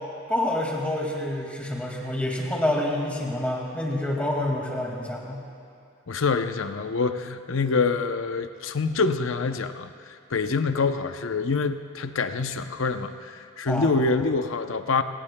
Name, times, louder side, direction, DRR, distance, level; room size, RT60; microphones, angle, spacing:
voice 1, 0.3-5.4 13.7-13.9, left 1 dB, 5° left, -2 dB, 2.0 m, -27 dB
voice 2, 6.1-15.0, left 4 dB, 70° left, 9 dB, 0.7 m, -26 dB
29.5 x 17.0 x 2.2 m, 2.5 s
head